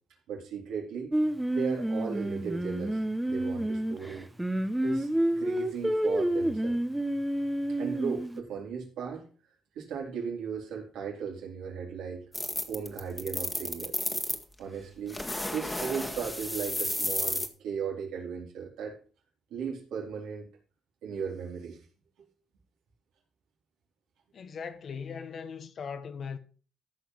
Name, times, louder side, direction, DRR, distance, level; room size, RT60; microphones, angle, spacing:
voice 1, 0.3-1.1 1.5-4.3 4.8-5.1 5.4-6.8 7.8-9.3 9.7-12.2 12.7-14.0 14.6-15.2 15.5-19.0 19.5-20.5 21.0-21.8 22.2-22.3, right 6 dB, 85° right, 4.1 m, -36 dB
Singing, 1.1-8.4, right 1 dB, 10° right, 1.0 m, -29 dB
sound 1, 12.3-14.4 15.1-17.5, left 1 dB, 10° left, 1.8 m, -32 dB
voice 2, 24.3-26.4, left 6 dB, 55° left, 1.4 m, -39 dB
14.0 x 5.7 x 5.7 m
cardioid pair, 90°, 0 cm